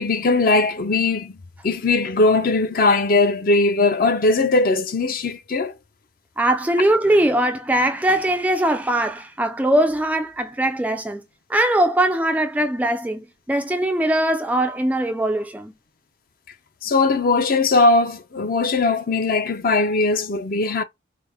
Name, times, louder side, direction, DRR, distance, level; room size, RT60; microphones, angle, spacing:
voice 1, 0.0-1.3 1.6-5.7 16.8-20.8, left 3 dB, 45° left, 0.5 m, -19 dB
voice 2, 6.4-11.2 11.5-15.7, right 1 dB, 10° right, 0.3 m, -21 dB
4.7 x 2.1 x 3.5 m
head